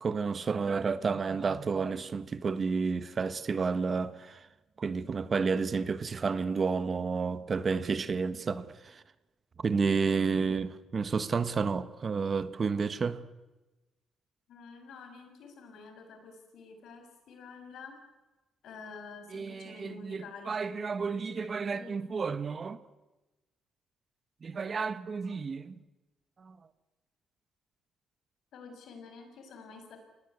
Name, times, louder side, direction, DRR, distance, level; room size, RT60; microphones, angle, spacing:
voice 1, 0.0-4.5 4.8-9.0 9.6-13.2 19.3-22.8 24.4-25.7 26.4-26.6, right 5 dB, 40° right, 1.4 m, -31 dB
voice 2, 14.5-18.0 18.6-21.9 28.5-30.0, left 4 dB, 75° left, 6.2 m, -48 dB
27.0 x 19.0 x 8.1 m
cardioid pair, 90°, 0 cm